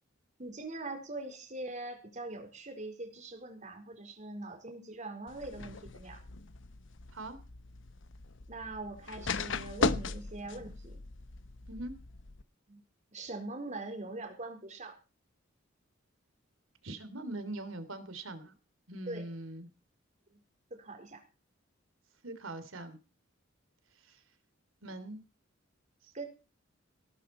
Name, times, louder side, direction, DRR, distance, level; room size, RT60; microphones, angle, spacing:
voice 1, 0.4-6.2 8.5-11.0 12.7-12.8 13.1-15.0 19.1-19.2 20.3-20.4 20.7-21.2 26.1-26.3, right 2 dB, 40° right, 6 dB, 4.4 m, -42 dB
sound 1, 5.3-12.4, left 4 dB, 65° left, 1.0 m, -38 dB
voice 2, 16.8-18.5 18.9-19.7 22.2-23.0 24.0-24.2 24.8-25.2 26.0-26.1, right 2 dB, 85° right, 11 dB, 3.1 m, -42 dB
18.5 x 12.5 x 4.4 m, 0.32 s
head